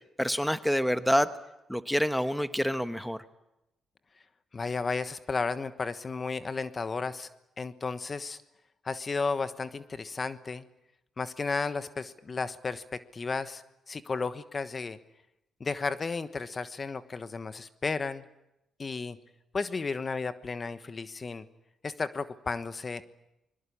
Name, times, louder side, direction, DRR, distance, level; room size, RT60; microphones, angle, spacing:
voice 1, 0.2-1.3 1.7-3.2, equal, ahead, 11 dB, 1.2 m, -27 dB
voice 2, 4.5-7.3 7.6-8.4 8.8-10.6 11.2-15.0 15.6-18.2 18.8-19.2 19.5-21.4 21.8-23.1, left 4 dB, 40° left, 12 dB, 1.2 m, -33 dB
24.5 x 22.0 x 8.6 m, 0.89 s
cardioid pair, 75°, 0 cm